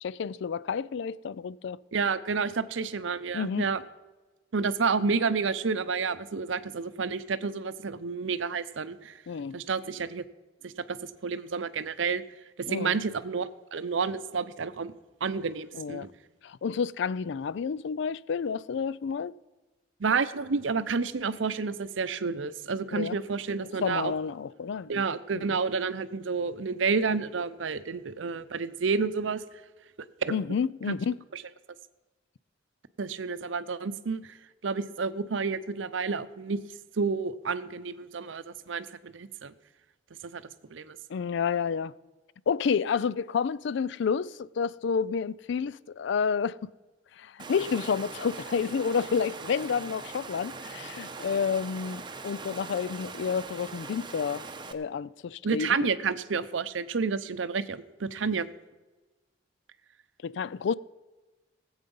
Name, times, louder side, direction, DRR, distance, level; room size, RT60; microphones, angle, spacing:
voice 1, 0.0-1.8 3.3-3.7 9.3-9.6 12.7-13.0 15.7-16.1 16.4-19.3 22.9-23.2 23.8-25.0 25.3-25.4 30.3-31.2 41.1-41.9 42.5-46.7 47.2-54.4 54.7-55.9 60.2-60.7, left 6 dB, 65° left, 0.4 m, -30 dB
voice 2, 1.9-3.8 4.5-9.1 9.5-10.2 10.6-11.0 11.2-12.2 12.7-14.9 15.2-16.1 20.0-24.1 24.9-29.4 30.2-30.4 31.3-31.4 33.0-34.3 34.6-36.6 37.0-39.5 40.2-40.4 40.7-41.0 55.4-58.5, right 5 dB, 80° right, 0.6 m, -30 dB
Water, 47.4-54.7, right 4 dB, 25° right, 0.9 m, -41 dB
18.0 x 8.0 x 5.4 m
head